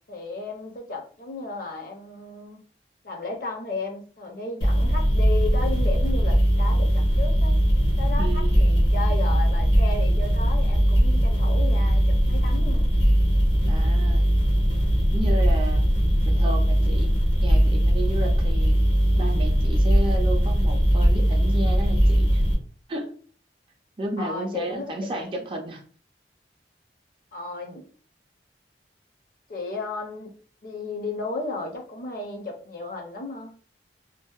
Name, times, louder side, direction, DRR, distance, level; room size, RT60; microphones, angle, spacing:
voice 1, 0.1-2.6 3.0-7.6 8.0-12.9 24.2-25.5 27.3-27.8 29.5-30.3 30.6-33.5, left 3 dB, 50° left, 2 dB, 0.5 m, -34 dB
sound 1, 4.6-22.5, equal, 90° left, 1.1 m, -20 dB
voice 2, 8.2-8.7 13.6-14.2 15.1-15.8 16.3-18.8 19.2-22.4 22.9-23.1 24.0-25.8, right 1 dB, 30° right, 2 dB, 0.4 m, -32 dB
2.6 x 2.0 x 2.3 m, 0.43 s
head